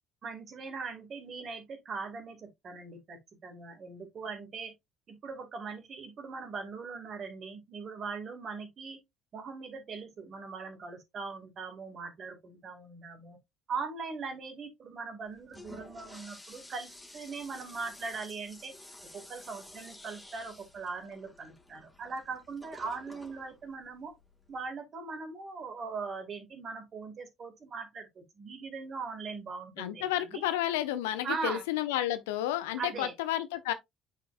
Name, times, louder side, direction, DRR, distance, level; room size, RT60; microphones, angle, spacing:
voice 1, 0.2-4.7 5.1-9.0 9.3-13.4 13.7-18.7 19.1-24.1 24.5-30.4 31.2-31.6 32.8-33.1, right 4 dB, 45° right, 2.3 m, -40 dB
Toilet flush, 15.3-24.7, left 1 dB, 10° left, 2.1 m, -52 dB
voice 2, 29.8-33.7, left 13 dB, 75° left, 0.7 m, -31 dB
8.7 x 4.9 x 2.5 m
hypercardioid pair, 55°, 0 cm